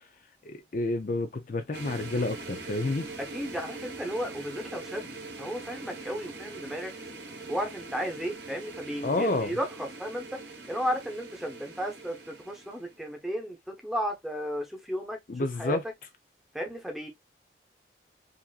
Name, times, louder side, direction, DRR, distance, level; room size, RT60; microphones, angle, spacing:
voice 1, 0.5-3.1 9.0-9.5 15.3-15.8, left 2 dB, 45° left, 0.5 m, -29 dB
sound 1, 1.7-13.0, right 3 dB, 75° right, 1.3 m, -42 dB
voice 2, 3.2-6.9 7.5-10.4 10.7-15.8 16.5-17.1, equal, ahead, 0.9 m, -34 dB
5.1 x 2.8 x 2.4 m
head